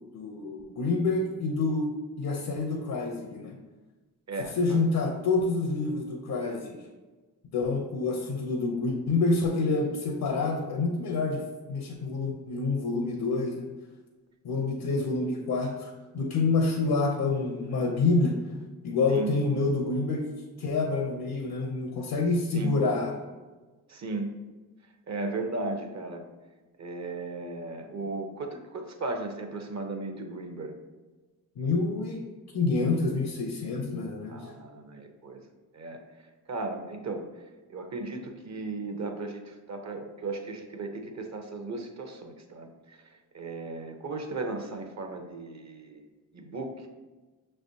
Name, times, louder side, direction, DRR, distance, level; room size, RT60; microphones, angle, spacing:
voice 1, 0.1-1.9 2.2-3.6 4.6-6.8 7.5-11.4 11.7-13.6 14.4-18.4 18.8-20.2 20.6-23.1 31.6-32.2 32.5-34.4, left 3 dB, 65° left, 1 dB, 0.8 m, -27 dB
voice 2, 4.3-4.8 19.1-19.4 22.5-22.8 23.9-24.5 25.1-26.2 26.8-30.8 34.3-35.4 35.7-36.0 36.5-37.3 37.7-43.0 43.3-46.0 46.3-46.9, right 3 dB, 45° right, 5 dB, 0.8 m, -36 dB
5.9 x 3.3 x 2.7 m, 1.2 s
cardioid pair, 55°, 38 cm